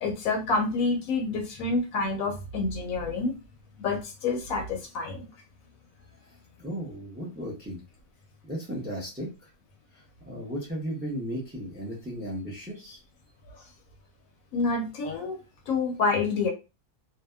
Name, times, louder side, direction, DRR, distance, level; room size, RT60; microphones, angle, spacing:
voice 1, 0.0-3.4 3.8-5.2 14.5-16.5, left 3 dB, 70° left, 4 dB, 0.9 m, -28 dB
voice 2, 6.6-7.8 8.4-9.5 9.9-13.0, equal, 15° right, -3 dB, 0.4 m, -35 dB
2.7 x 2.1 x 2.2 m, 0.28 s
omnidirectional pair, 1.6 m